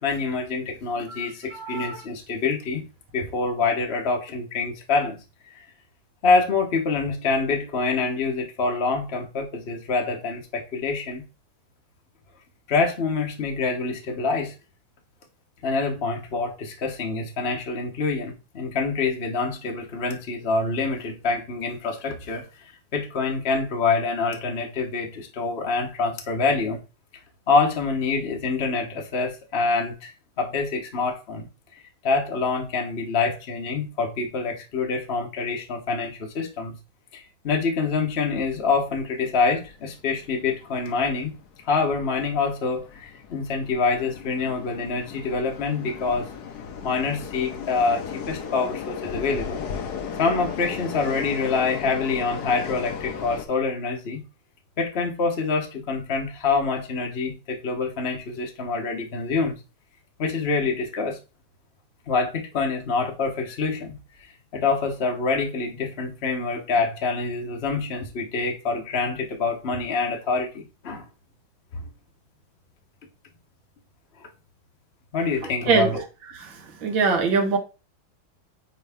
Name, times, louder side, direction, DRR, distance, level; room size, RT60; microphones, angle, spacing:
voice 1, 0.0-2.8 3.1-5.2 6.2-11.2 12.7-14.5 15.6-26.8 27.5-30.1 30.4-31.5 31.8-36.7 37.1-41.3 41.7-46.3 46.8-49.6 50.1-54.2 54.8-59.5 60.2-61.2 62.1-64.0 64.2-71.0 75.1-76.0, left 4 dB, 40° left, 1.1 m, -26 dB
voice 2, 1.1-2.0 75.7-75.9 76.3-77.6, right 4 dB, 75° right, 2.1 m, -24 dB
sound 1, 38.4-53.4, left 6 dB, 60° left, 1.3 m, -36 dB
9.1 x 3.1 x 3.5 m
omnidirectional pair, 2.2 m